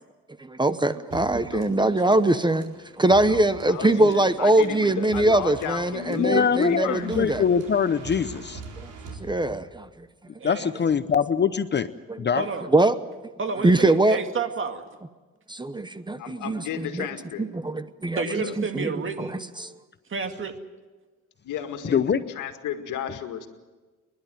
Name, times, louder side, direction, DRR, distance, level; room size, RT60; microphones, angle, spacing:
voice 1, 0.4-7.4 8.8-8.9 9.2-9.9 12.1-12.2 12.7-12.9 13.6-14.2 15.5-16.6 16.9-17.1 17.4-18.4 18.7-18.9 19.2-19.3 19.6-19.7, right 2 dB, 15° right, 13 dB, 0.9 m, -22 dB
sound 1, 1.1-9.9, right 4 dB, 80° right, 4.2 m, -44 dB
voice 2, 3.3-7.3 16.2-17.4 18.3-18.6 21.4-23.5, left 9 dB, 85° left, 6 dB, 2.0 m, -34 dB
voice 3, 6.2-8.6 10.4-11.9 12.2-12.4 21.8-22.2, left 7 dB, 35° left, 12 dB, 0.8 m, -23 dB
voice 4, 10.4-10.7 12.4-12.7 13.4-14.9 18.2-19.4 20.1-20.6, right 4 dB, 40° right, 7 dB, 2.1 m, -30 dB
28.5 x 11.5 x 9.3 m, 1.3 s
cardioid pair, 90°, 30 cm